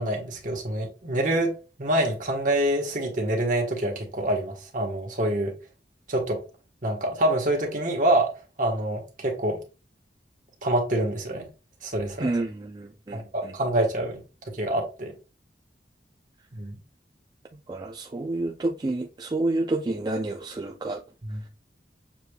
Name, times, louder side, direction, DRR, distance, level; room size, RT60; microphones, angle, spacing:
voice 1, 0.0-5.5 6.1-6.4 6.8-8.3 8.6-9.6 10.6-11.5 11.8-12.3 13.1-15.1 16.5-16.8 21.2-21.4, right 1 dB, 45° right, 1.2 m, -26 dB
voice 2, 12.2-13.5 17.7-21.0, right 2 dB, 25° right, 0.3 m, -29 dB
6.6 x 3.2 x 2.2 m
head